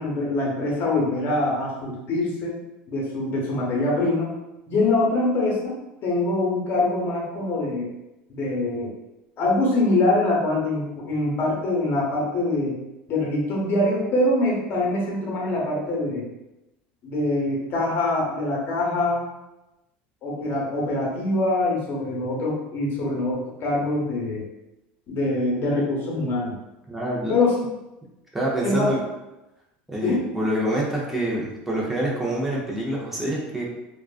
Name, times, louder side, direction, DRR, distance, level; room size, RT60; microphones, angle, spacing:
voice 1, 0.0-2.5 2.9-4.3 4.7-5.7 6.0-7.9 8.3-8.9 9.4-12.8 13.1-16.2 17.0-19.2 20.2-24.4 25.1-26.6 27.3-27.6 28.6-28.9 30.0-30.2, left 2 dB, 45° left, -3 dB, 0.9 m, -24 dB
voice 2, 26.9-27.3 28.3-29.0 29.9-33.6, right 1 dB, 5° right, -5 dB, 0.6 m, -26 dB
2.4 x 2.2 x 2.4 m, 0.97 s
supercardioid pair, 100°, 5 cm